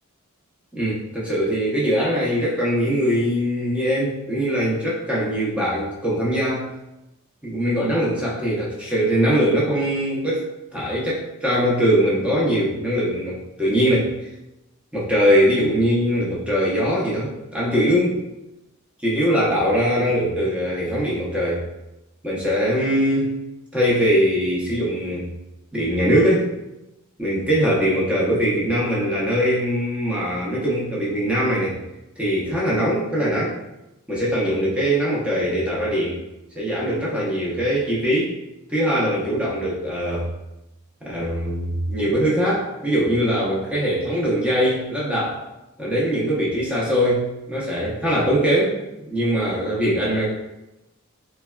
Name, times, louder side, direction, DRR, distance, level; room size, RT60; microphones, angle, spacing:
voice 1, 0.7-6.7 7.4-10.5 10.7-14.1 14.9-18.2 19.0-21.6 22.2-23.3 23.7-25.3 25.7-26.5 27.2-31.8 32.2-33.5 34.1-36.2 36.5-38.3 38.7-40.3 41.0-45.4 45.8-48.8 49.1-50.3, equal, 5° right, -6 dB, 0.6 m, -21 dB
3.3 x 2.2 x 2.2 m, 0.94 s
head